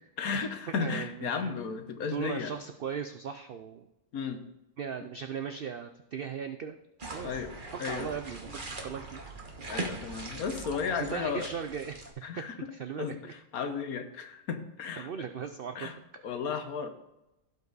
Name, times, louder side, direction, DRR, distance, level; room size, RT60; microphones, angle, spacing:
voice 1, 0.2-2.5 4.1-4.4 7.2-7.5 7.8-8.1 9.7-11.5 12.2-12.5 13.0-13.2 13.5-15.3 15.7-15.9 16.2-16.9, left 6 dB, 70° left, 7 dB, 1.4 m, -34 dB
voice 2, 0.8-1.5 2.1-3.9 4.8-6.8 7.1-7.4 7.8-9.2 10.8-12.0 12.4-12.5 12.7-13.3 15.0-15.9, right 7 dB, 75° right, 7 dB, 0.5 m, -38 dB
sound 1, 7.0-12.1, right 2 dB, 35° right, 1.4 m, -41 dB
16.5 x 5.6 x 4.0 m, 0.91 s
omnidirectional pair, 1.6 m